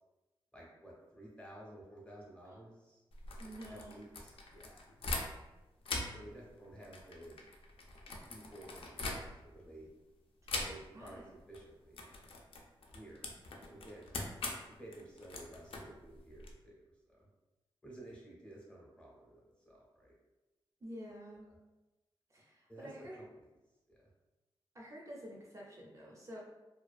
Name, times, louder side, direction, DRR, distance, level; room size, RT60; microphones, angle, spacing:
voice 1, 0.5-3.0 3.7-4.8 6.1-7.4 8.1-9.9 10.6-12.1 12.9-13.3 13.6-14.0 14.7-16.8 17.1-17.3 17.8-20.1 22.7-23.3 23.9-24.1, right 1 dB, 10° left, -4 dB, 0.6 m, -53 dB
sound 1, 3.1-5.5 5.8-9.6 10.5-11.1 11.4-11.6 11.9-16.5, left 2 dB, 80° left, 0.4 m, -42 dB
voice 2, 3.4-4.0 10.9-11.3 20.8-21.5 22.3-23.2 24.7-26.4, equal, 35° right, -3 dB, 0.4 m, -49 dB
2.5 x 2.2 x 2.3 m, 1.0 s
wide cardioid pair, 150°, 9 cm